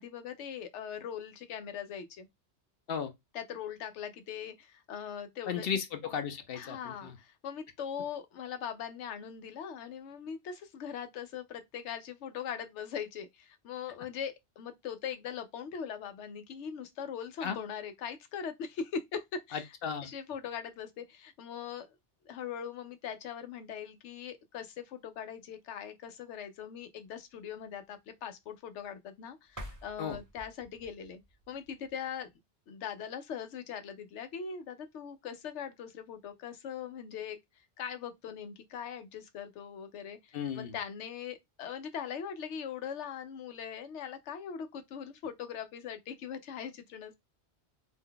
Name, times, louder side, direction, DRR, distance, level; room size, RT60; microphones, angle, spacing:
voice 1, 0.0-2.3 3.3-5.7 6.5-19.7 20.0-21.9 22.2-31.2 31.5-32.3 32.7-37.4 37.8-47.2, left 7 dB, 90° left, 0.9 m, -41 dB
voice 2, 5.5-7.2 17.4-17.6 19.5-20.1 30.0-30.2 40.3-40.7, left 7 dB, 60° left, 0.7 m, -35 dB
sound 1, 29.5-32.3, equal, 20° right, 0.7 m, -49 dB
2.6 x 2.2 x 3.6 m
omnidirectional pair, 1.2 m